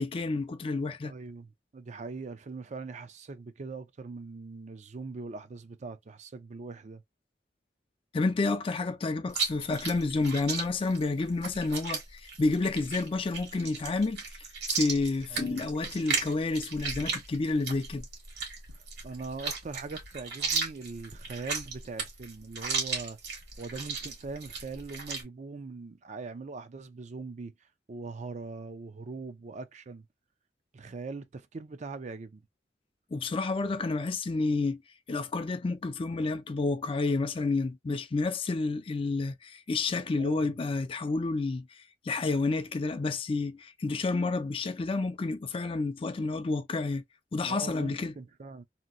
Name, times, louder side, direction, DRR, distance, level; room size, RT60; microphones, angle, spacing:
voice 1, 0.0-1.1 8.1-14.2 14.7-18.0 33.1-34.8 35.1-41.7 42.0-47.0 47.3-48.1, left 3 dB, 30° left, 0.4 m, -30 dB
voice 2, 1.0-7.0 15.3-15.6 18.7-23.2 23.6-27.5 27.9-30.1 30.7-32.4 40.2-40.5 47.4-48.6, right 4 dB, 40° right, 0.4 m, -41 dB
Chewing mastication, 9.3-25.2, right 5 dB, 65° right, 1.4 m, -35 dB
2.9 x 2.6 x 2.4 m
head